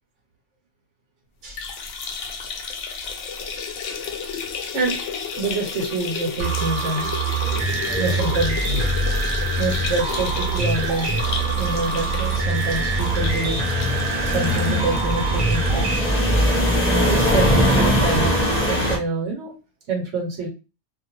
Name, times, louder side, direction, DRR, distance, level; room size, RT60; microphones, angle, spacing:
sound 1, 1.5-16.9 17.2-17.3 17.6-17.7 18.7-18.8, left 6 dB, 90° left, 0.9 m, -32 dB
voice 1, 5.4-7.1 8.0-8.8 9.6-11.2 11.6-13.6 14.3-16.1 17.0-18.3 18.7-19.5 19.9-20.5, right 3 dB, 90° right, 0 dB, 1.1 m, -26 dB
sound 2, 6.4-16.0, right 3 dB, 60° right, 0.6 m, -25 dB
sound 3, 7.4-19.0, equal, 20° left, 0.4 m, -23 dB
2.5 x 2.2 x 2.8 m, 0.31 s
omnidirectional pair, 1.2 m